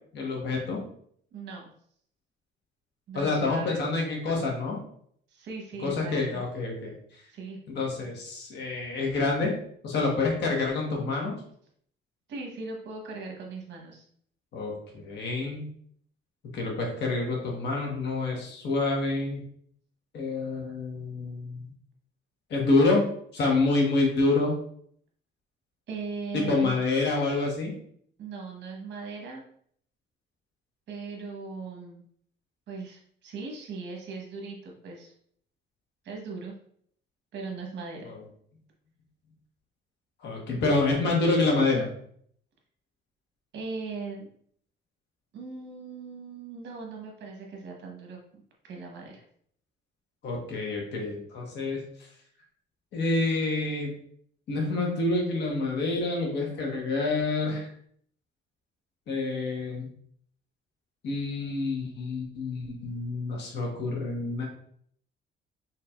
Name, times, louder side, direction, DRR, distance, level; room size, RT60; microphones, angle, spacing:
voice 1, 0.1-0.8 3.1-4.8 5.8-6.9 7.7-9.5 9.8-11.4 14.5-15.6 16.5-19.4 20.1-21.6 22.5-23.0 23.3-24.5 26.3-27.7 38.0-38.2 40.2-41.9 50.2-51.8 52.9-53.9 54.5-57.7 59.1-59.9 61.0-64.4, left 3 dB, 65° left, -1 dB, 1.3 m, -27 dB
voice 2, 1.3-1.7 3.1-3.8 5.3-6.4 7.3-7.6 12.3-14.0 25.9-26.8 28.2-29.4 30.9-32.0 32.7-35.1 36.0-36.5 37.3-38.1 43.5-44.3 45.3-48.2 48.6-49.2, right 4 dB, 65° right, 0 dB, 1.2 m, -39 dB
5.7 x 2.9 x 2.4 m, 0.63 s
cardioid pair, 155°, 19 cm